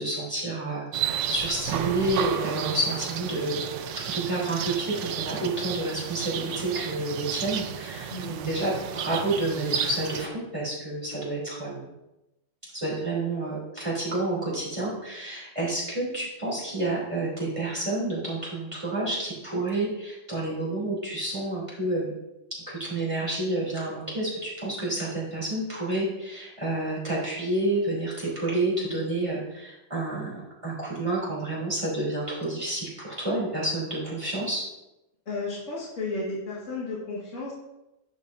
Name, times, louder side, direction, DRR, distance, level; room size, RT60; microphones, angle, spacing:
voice 1, 0.0-3.6 4.1-11.9 12.7-22.1 22.7-34.7, right 2 dB, 25° right, -7 dB, 3.3 m, -29 dB
sound 1, 0.9-10.3, right 9 dB, 70° right, 0.9 m, -32 dB
voice 2, 35.3-37.5, left 3 dB, 70° left, -7 dB, 2.3 m, -33 dB
10.5 x 6.7 x 2.7 m, 0.95 s
omnidirectional pair, 1.3 m